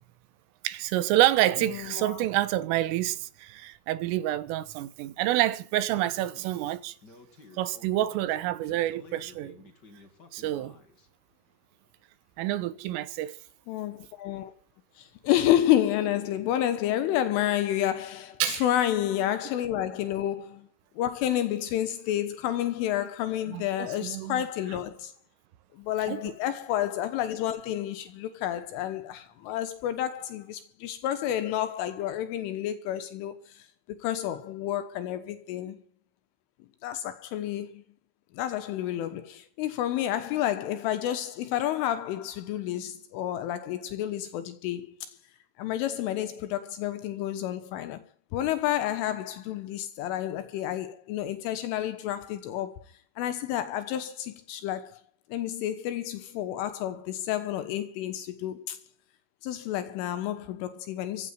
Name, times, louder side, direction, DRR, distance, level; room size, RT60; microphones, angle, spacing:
voice 1, 0.7-6.9 7.6-9.6 10.3-10.8 12.4-13.4 18.4-18.6 23.5-24.4 26.1-26.2, right 14 dB, 80° right, 3.7 m, -28 dB
voice 2, 1.6-2.3 13.7-14.5 15.0-20.7 21.0-25.1 25.7-33.7 34.0-35.8 36.8-37.8 38.3-45.1 45.6-48.0 48.3-52.8 53.2-55.0 55.3-58.8 59.4-61.3, left 12 dB, 80° left, 3.6 m, -30 dB
Speech, 5.9-11.1, left 3 dB, 30° left, 2.3 m, -53 dB
15.5 x 9.7 x 9.3 m
omnidirectional pair, 5.8 m